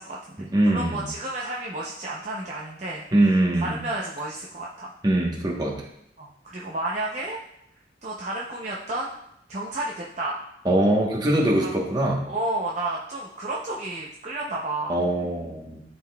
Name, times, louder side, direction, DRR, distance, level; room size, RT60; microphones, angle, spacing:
voice 1, 0.0-0.4 0.7-4.9 6.2-7.4 8.0-9.1 9.5-10.4 11.6-11.7 12.3-15.0, right 2 dB, 40° right, -4 dB, 0.6 m, -31 dB
voice 2, 0.5-1.1 3.1-3.8 5.0-5.7 10.6-12.3 14.9-15.8, right 1 dB, 20° right, -2 dB, 1.0 m, -22 dB
11.0 x 3.9 x 2.2 m, 0.76 s
head